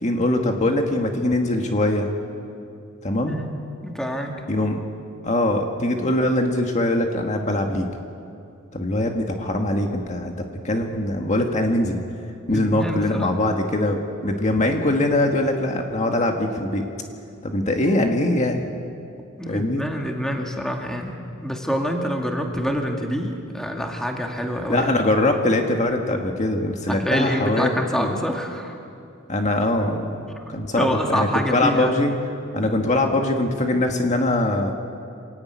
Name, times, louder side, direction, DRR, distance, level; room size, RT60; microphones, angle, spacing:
voice 1, 0.0-2.1 3.0-3.4 4.5-4.8 5.2-7.9 8.7-10.3 10.6-12.0 12.5-16.8 17.4-18.6 19.5-19.8 24.7-28.1 29.3-30.2 30.5-32.1 32.5-34.7, left 1 dB, 35° left, 3 dB, 1.7 m, -22 dB
voice 2, 3.8-4.4 12.5-13.3 19.4-24.9 26.9-28.8 30.8-32.0, equal, 5° left, 1 dB, 2.3 m, -26 dB
26.5 x 16.5 x 9.5 m, 2.5 s
head